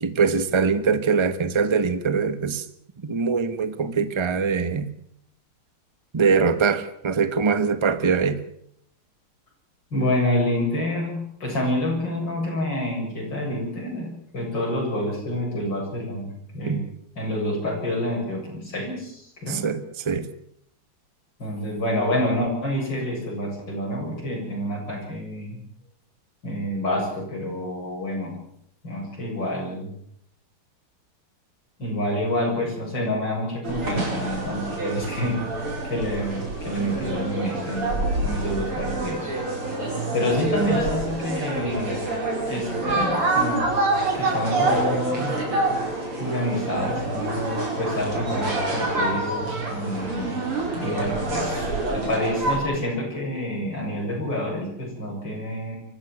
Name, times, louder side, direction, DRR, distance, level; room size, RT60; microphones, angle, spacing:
voice 1, 0.0-2.6 3.0-4.9 6.1-8.4 16.7-16.9 19.5-20.3, right 5 dB, 20° right, 0.9 m, -23 dB
voice 2, 9.9-14.1 14.3-16.8 17.2-19.7 21.4-25.6 26.4-28.3 28.8-29.9 31.8-35.4 35.8-39.3 40.1-42.0 42.5-43.6 44.1-45.3 46.2-50.3 50.8-55.8, left 1 dB, 55° left, 8.5 m, -28 dB
sound 1, 33.6-52.6, right 2 dB, 90° right, 5.9 m, -27 dB
24.0 x 15.0 x 8.0 m
omnidirectional pair, 2.3 m